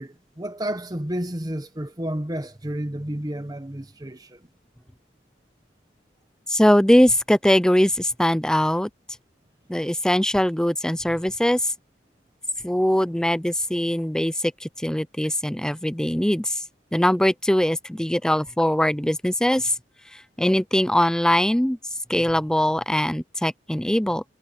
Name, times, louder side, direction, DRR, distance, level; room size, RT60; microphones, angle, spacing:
voice 1, 0.0-4.4, right 1 dB, 20° right, 1.3 m, -31 dB
voice 2, 6.5-8.9 9.7-11.7 12.6-16.6 16.9-19.8 20.4-21.8 22.1-24.2, equal, 5° left, 0.4 m, -21 dB
head